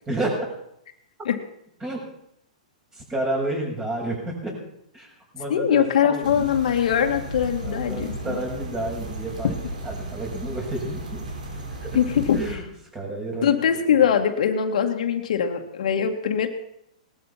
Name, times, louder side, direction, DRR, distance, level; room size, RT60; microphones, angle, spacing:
voice 1, 0.1-0.5 1.8-2.0 2.9-4.6 4.9-6.6 7.6-11.4 11.8-12.0 12.3-12.6 12.9-13.5 13.9-14.0, right 1 dB, 15° right, 0 dB, 6.9 m, -30 dB
voice 2, 5.5-8.4 11.9-12.4 13.4-16.5, left 8 dB, 70° left, 4 dB, 2.2 m, -22 dB
sound 1, 6.2-12.6, right 2 dB, 80° right, 5.0 m, -35 dB
19.0 x 12.5 x 5.9 m, 0.76 s
hypercardioid pair, 135°, 4 cm